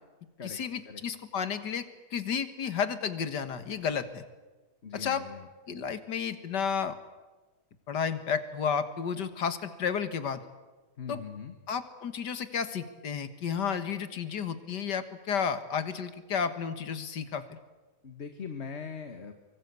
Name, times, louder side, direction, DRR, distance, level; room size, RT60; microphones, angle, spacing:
voice 1, 0.4-1.9 2.1-4.3 4.9-5.2 5.7-7.0 7.9-10.4 11.1-11.2 11.7-17.4, left 7 dB, 85° left, 11 dB, 2.2 m, -32 dB
voice 2, 4.8-5.4 11.0-11.5 18.0-19.3, left 6 dB, 40° left, 7 dB, 1.7 m, -41 dB
25.0 x 23.5 x 8.3 m, 1.2 s
omnidirectional pair, 1.8 m